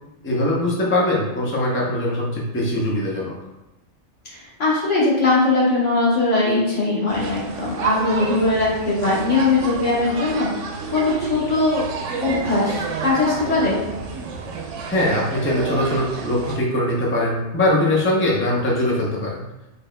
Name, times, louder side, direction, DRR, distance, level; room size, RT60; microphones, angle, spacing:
voice 1, 0.2-3.3 14.8-19.7, left 1 dB, 15° left, -4 dB, 0.5 m, -21 dB
voice 2, 4.2-11.8 12.2-13.8, left 3 dB, 80° left, -5 dB, 1.5 m, -20 dB
sound 1, 7.1-16.6, right 5 dB, 80° right, 0.9 m, -30 dB
4.2 x 3.4 x 2.2 m, 0.97 s
omnidirectional pair, 1.2 m